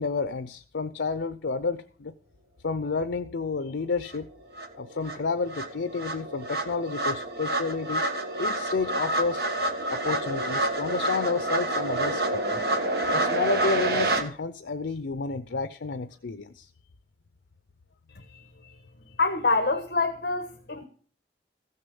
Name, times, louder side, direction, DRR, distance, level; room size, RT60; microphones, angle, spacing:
voice 1, 0.0-2.1 2.6-4.3 4.8-8.1 8.4-9.4 9.9-12.6 13.1-16.7, left 4 dB, 90° left, 0.6 m, -30 dB
sound 1, 4.1-4.2 4.6-14.2, right 2 dB, 60° right, 1.6 m, -28 dB
voice 2, 18.1-18.8 19.2-20.8, left 3 dB, 60° left, 1.3 m, -27 dB
15.0 x 6.7 x 7.0 m
head